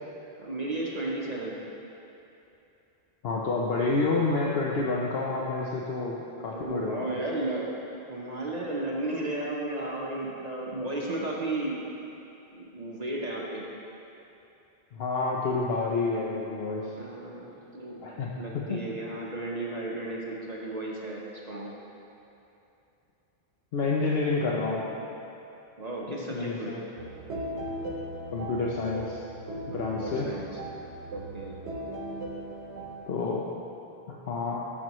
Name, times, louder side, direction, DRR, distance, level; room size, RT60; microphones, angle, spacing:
voice 1, 0.4-1.6 6.5-7.7 8.1-11.9 12.5-13.6 17.0-21.7 25.8-26.8 29.7-30.5 31.1-31.6, right 2 dB, 40° right, -3 dB, 1.0 m, -34 dB
voice 2, 3.2-7.0 14.9-16.9 18.0-18.8 23.7-24.9 26.1-26.8 28.3-29.2 29.7-30.3 33.1-33.5 34.1-34.7, left 3 dB, 70° left, -3 dB, 0.9 m, -29 dB
sound 1, 27.0-33.1, right 1 dB, 85° right, 1.1 m, -38 dB
13.5 x 6.2 x 3.1 m, 2.8 s
omnidirectional pair, 1.1 m